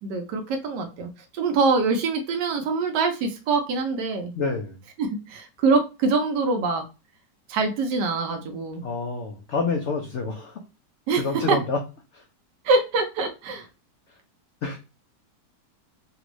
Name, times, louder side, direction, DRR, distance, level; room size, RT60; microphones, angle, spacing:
voice 1, 0.0-4.3 5.0-6.9 7.5-8.9 11.1-11.6 12.6-13.6, right 4 dB, 75° right, 4 dB, 1.3 m, -24 dB
voice 2, 4.4-4.8 8.8-10.6 11.1-11.8 12.1-12.2 14.6-14.8, left 4 dB, 75° left, 2 dB, 0.6 m, -28 dB
3.4 x 2.4 x 3.0 m, 0.29 s
omnidirectional pair, 1.9 m